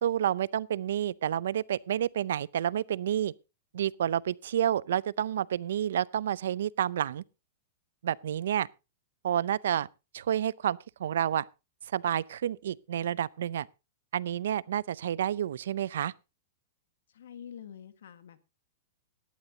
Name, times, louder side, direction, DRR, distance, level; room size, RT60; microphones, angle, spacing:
voice 1, 0.0-3.3 3.7-7.2 8.0-8.7 9.2-9.9 10.1-11.5 11.9-13.7 14.1-16.1, right 10 dB, 70° right, 0.5 m, -29 dB
voice 2, 17.1-18.4, left 8 dB, 80° left, 1.6 m, -46 dB
17.5 x 11.0 x 2.8 m
supercardioid pair, 175°, 0 cm